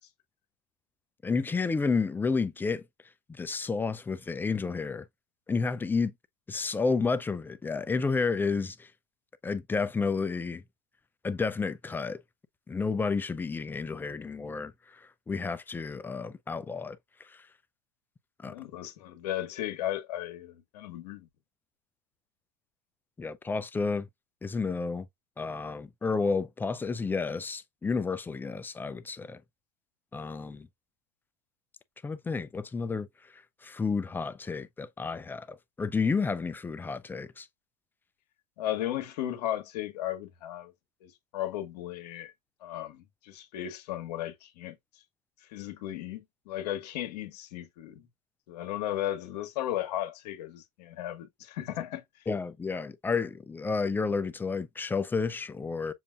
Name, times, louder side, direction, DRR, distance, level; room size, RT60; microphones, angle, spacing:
voice 1, 1.2-2.8 3.3-5.0 5.5-6.1 6.5-8.9 9.4-10.6 11.2-12.2 12.7-17.0 18.4-18.5 23.2-24.1 24.4-25.1 25.4-29.4 30.1-30.7 32.0-33.1 33.6-37.5 52.3-55.9, left 4 dB, 10° left, 0.3 m, -31 dB
voice 2, 18.5-21.3 38.6-40.7 41.0-42.3 42.6-44.8 45.5-48.1 48.5-52.0, left 12 dB, 75° left, 1.2 m, -35 dB
7.0 x 2.5 x 2.3 m
supercardioid pair, 125°, 21 cm